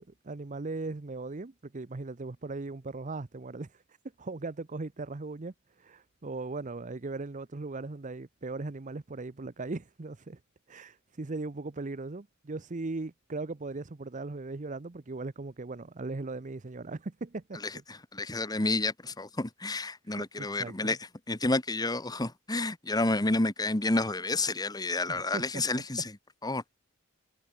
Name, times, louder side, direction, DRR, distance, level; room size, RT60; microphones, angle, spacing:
voice 1, 0.0-3.8 4.2-10.4 10.7-17.6 20.1-20.9 25.1-25.6, right 3 dB, 40° right, 0.7 m, -38 dB
voice 2, 17.6-26.1 26.4-26.6, left 2 dB, 20° left, 1.3 m, -30 dB
head